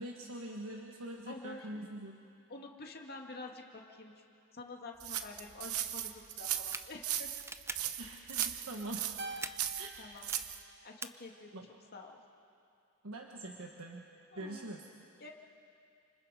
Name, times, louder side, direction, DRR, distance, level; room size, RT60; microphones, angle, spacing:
voice 1, 0.0-2.2 8.0-9.0 9.8-10.1 11.5-11.7 13.0-14.0 14.3-14.8, right 1 dB, 70° right, 1 dB, 1.4 m, -44 dB
voice 2, 1.3-2.0 2.5-4.1 4.5-7.5 10.0-10.3 10.8-11.6 11.9-12.2 14.3-14.7 15.2-15.3, left 2 dB, 45° left, 1 dB, 2.1 m, -48 dB
sound 1, 5.0-10.6, right 12 dB, 85° right, 1.0 m, -37 dB
sound 2, 6.5-6.8 7.4-7.7 8.3-8.5 9.4-9.5 10.2-10.4 11.0-11.1, right 3 dB, 10° right, 0.6 m, -41 dB
Keyboard (musical), 9.2-11.7, right 2 dB, 50° right, 1.2 m, -48 dB
29.5 x 27.0 x 5.0 m, 2.5 s
head